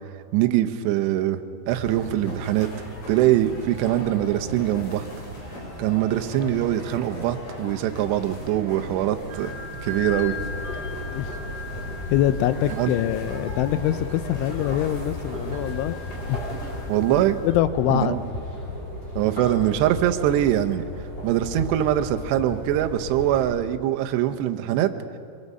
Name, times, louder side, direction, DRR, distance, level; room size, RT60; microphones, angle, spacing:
voice 1, 0.3-2.7 3.1-5.1 5.8-9.5 9.8-10.4 12.8-12.9 16.9-17.4 17.9-18.2 19.2-20.8 21.2-24.9, right 13 dB, 75° right, 7 dB, 2.7 m, -23 dB
sound 1, 1.7-16.9, left 1 dB, 35° left, 4.5 m, -38 dB
sound 2, 9.3-17.6, left 3 dB, 40° right, 2.5 m, -39 dB
sound 3, 9.7-23.4, left 1 dB, 15° left, 7.3 m, -35 dB
voice 2, 12.1-16.0 16.3-16.4 17.1-18.2, left 12 dB, 80° left, 12 dB, 3.0 m, -24 dB
25.0 x 23.5 x 5.5 m, 2.5 s
omnidirectional pair, 5.7 m